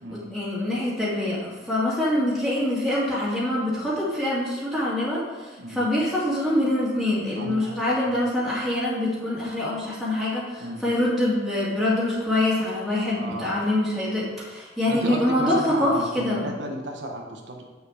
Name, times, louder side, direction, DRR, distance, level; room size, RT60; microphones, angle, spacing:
voice 1, 0.1-16.4, left 1 dB, ahead, -10 dB, 1.9 m, -25 dB
voice 2, 7.3-7.8 8.1-8.2 10.6-10.9 13.1-13.6 14.9-17.6, right 1 dB, 90° right, 1 dB, 1.1 m, -33 dB
7.3 x 6.4 x 3.5 m, 1.2 s
head